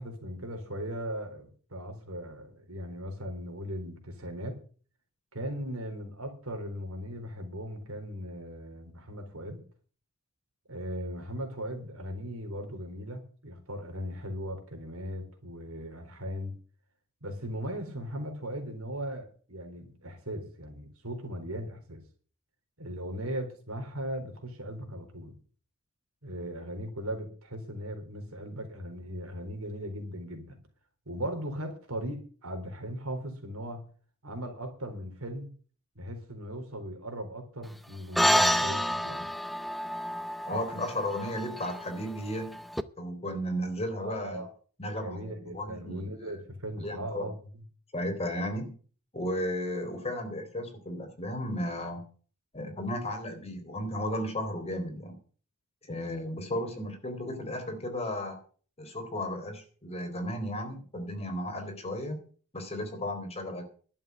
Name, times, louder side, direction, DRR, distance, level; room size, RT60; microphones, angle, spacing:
voice 1, 0.0-4.6 5.3-9.6 10.7-16.5 17.2-22.0 22.8-25.3 26.2-30.6 31.1-33.8 34.2-35.5 36.0-39.3 43.9-44.5 45.0-47.6, equal, 80° right, 5 dB, 3.9 m, -38 dB
sound 1, 38.2-42.8, equal, ahead, 0.6 m, -29 dB
voice 2, 40.5-42.6 43.0-44.4 44.8-46.1 46.8-47.3 47.9-48.7 49.1-52.1 52.5-55.2 55.9-58.4 58.8-62.2 62.5-63.6, left 1 dB, 30° left, 5 dB, 3.7 m, -34 dB
11.5 x 7.2 x 9.2 m, 0.42 s
head